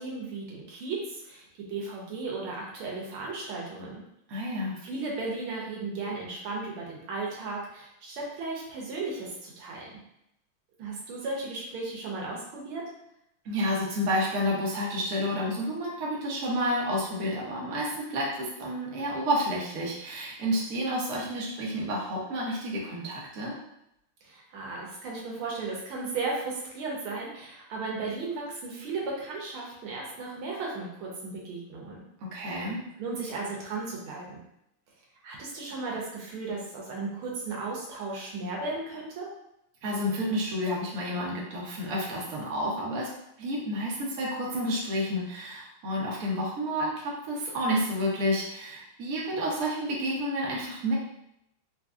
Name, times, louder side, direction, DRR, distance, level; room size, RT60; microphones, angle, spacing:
voice 1, 0.0-4.0 4.8-10.0 10.8-12.8 24.2-32.0 32.4-32.6 33.0-34.4 35.2-39.3, right 3 dB, 90° right, -3 dB, 1.7 m, -35 dB
voice 2, 4.3-4.8 13.4-23.6 32.3-32.8 39.8-43.1 43.4-50.9, equal, 55° right, -4 dB, 1.1 m, -30 dB
4.4 x 2.6 x 2.3 m, 0.81 s
omnidirectional pair, 2.3 m